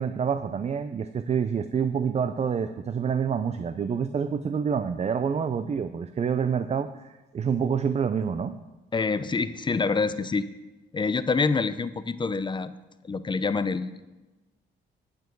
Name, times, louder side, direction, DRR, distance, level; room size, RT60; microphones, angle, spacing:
voice 1, 0.0-8.6, right 7 dB, 35° right, 11 dB, 0.5 m, -27 dB
voice 2, 8.9-10.5 10.9-12.7 13.0-14.0, left 4 dB, 25° left, 13 dB, 0.5 m, -26 dB
9.2 x 8.4 x 4.6 m, 1.1 s
cardioid pair, 90°, 20 cm